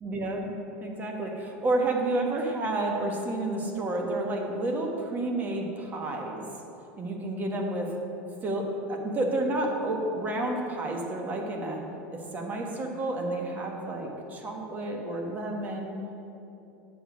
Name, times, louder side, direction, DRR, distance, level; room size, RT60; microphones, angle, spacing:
voice 1, 0.0-6.5 7.0-7.9 8.4-11.8 12.1-16.0, right 2 dB, 30° right, 1 dB, 1.4 m, -30 dB
8.5 x 5.2 x 6.4 m, 2.9 s
supercardioid pair, 110°, 6 cm